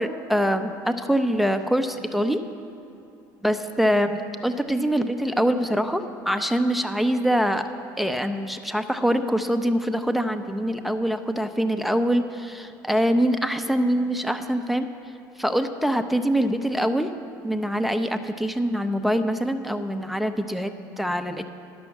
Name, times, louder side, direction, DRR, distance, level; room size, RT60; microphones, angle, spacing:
voice 1, 0.0-2.4 3.4-7.6 8.0-14.9 15.4-17.1 17.4-21.5, equal, ahead, 8 dB, 0.6 m, -24 dB
10.5 x 6.3 x 7.1 m, 2.8 s
hypercardioid pair, 70°, 10 cm